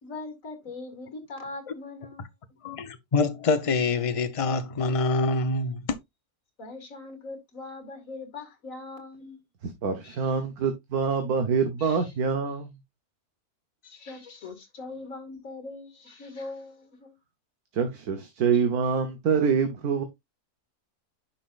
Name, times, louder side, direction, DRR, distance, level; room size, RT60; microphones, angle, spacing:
voice 1, 0.0-2.2 2.5-2.6 6.6-9.4 10.0-10.3 11.8-12.1 13.8-17.2, left 3 dB, 65° left, 2.4 m, -41 dB
voice 2, 2.6-5.8, left 3 dB, 30° left, 0.7 m, -25 dB
voice 3, 9.6-12.8 17.7-20.0, right 6 dB, 85° right, 1.6 m, -26 dB
10.0 x 6.0 x 2.5 m
omnidirectional pair, 1.5 m